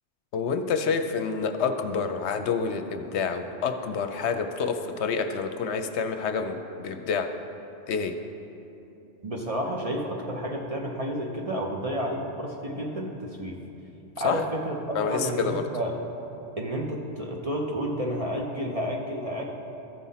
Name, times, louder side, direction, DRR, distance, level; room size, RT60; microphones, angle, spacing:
voice 1, 0.3-7.3 7.9-8.2 14.2-14.4 14.9-15.6, left 5 dB, 70° left, 7 dB, 0.8 m, -28 dB
voice 2, 9.2-13.6 14.2-15.9 16.6-19.4, equal, 35° right, -1 dB, 0.7 m, -31 dB
14.0 x 5.6 x 4.2 m, 2.9 s
omnidirectional pair, 1.2 m